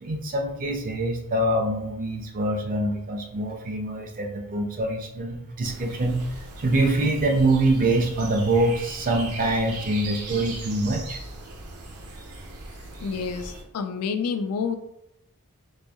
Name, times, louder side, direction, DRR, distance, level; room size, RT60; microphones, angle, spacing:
voice 1, 0.0-11.2, right 2 dB, 40° right, 4 dB, 0.5 m, -25 dB
sound 1, 5.6-13.6, right 2 dB, 80° right, 0.6 m, -39 dB
voice 2, 13.0-14.8, left 5 dB, 80° left, 8 dB, 0.4 m, -28 dB
4.1 x 2.7 x 2.3 m, 0.80 s
head